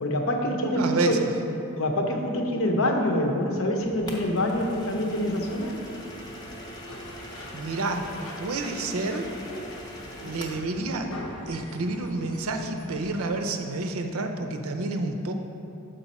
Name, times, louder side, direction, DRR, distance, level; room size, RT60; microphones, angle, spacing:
voice 1, 0.0-1.2 1.8-5.8, left 1 dB, 65° left, 2 dB, 0.7 m, -26 dB
voice 2, 0.6-1.3 7.5-8.0 8.4-9.3 10.2-11.1 11.5-15.3, right 2 dB, 75° right, 5 dB, 0.6 m, -29 dB
sound 1, 3.8-13.3, left 1 dB, 90° left, 0.9 m, -44 dB
sound 2, 4.1-10.7, equal, 20° left, 0.7 m, -42 dB
6.9 x 5.3 x 4.2 m, 2.7 s
head